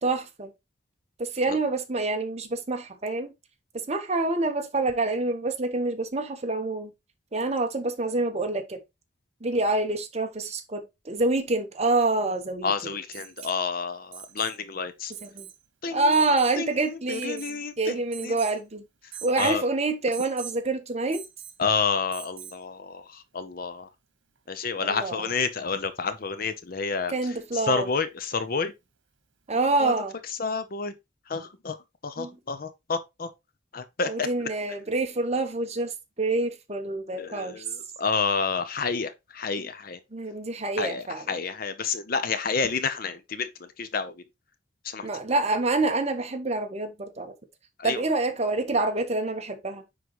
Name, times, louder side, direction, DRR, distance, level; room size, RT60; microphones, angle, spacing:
voice 1, 0.0-0.5 1.2-3.3 3.9-6.9 7.3-8.8 9.4-12.9 15.2-15.4 15.9-18.8 19.2-21.2 24.9-25.3 27.1-27.9 29.5-30.1 32.2-32.4 34.1-37.6 40.1-41.2 45.0-47.3 47.8-49.8, right 2 dB, 35° right, 1.1 m, -27 dB
voice 2, 12.6-15.1 15.8-16.1 16.6-18.4 19.4-19.6 21.6-23.9 24.5-28.7 29.8-29.9 30.4-30.9 31.3-31.8 32.0-33.3 33.7-34.3 37.1-40.0 40.8-44.1 44.8-45.1 47.8-48.0, left 5 dB, 50° left, 0.7 m, -29 dB
Alarm, 13.1-13.6 14.1-14.6 15.1-15.6 16.1-16.6 17.1-17.6 18.1-18.6 19.1-19.6 20.1-20.6 21.1-21.6 22.1-22.6 24.4-24.5, right 10 dB, 85° right, 1.3 m, -43 dB
9.4 x 3.9 x 3.0 m
head